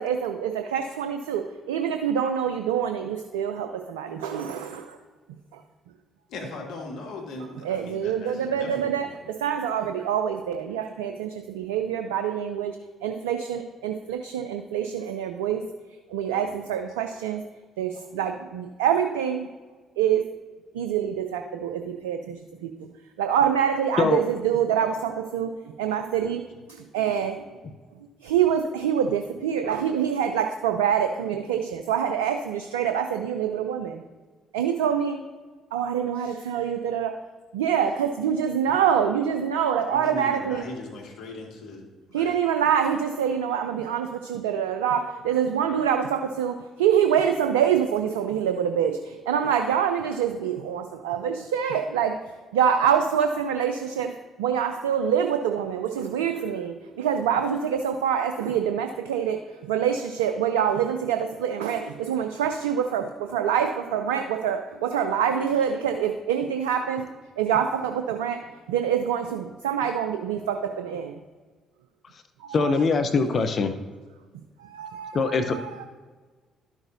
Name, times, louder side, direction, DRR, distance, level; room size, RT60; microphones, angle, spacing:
voice 1, 0.0-5.0 7.6-12.8 13.0-15.6 16.1-17.4 17.8-19.5 20.0-20.2 20.7-22.9 23.2-25.5 25.8-26.4 26.9-27.4 28.2-34.0 34.5-35.2 35.7-37.1 37.5-40.6 42.1-52.2 52.5-54.1 54.4-67.1 67.4-68.4 68.7-71.2 72.4-72.8 74.6-75.9, right 8 dB, 85° right, 6 dB, 0.4 m, -26 dB
voice 2, 6.3-9.1 16.3-16.6 26.2-26.4 38.1-38.2 39.9-41.8 42.1-42.4 45.6-45.8 72.6-73.0, left 2 dB, 70° left, 0 dB, 1.7 m, -39 dB
voice 3, 72.5-73.7 75.1-75.6, left 4 dB, 50° left, 8 dB, 0.6 m, -22 dB
12.0 x 6.0 x 2.6 m, 1.4 s
hypercardioid pair, 50°, 0 cm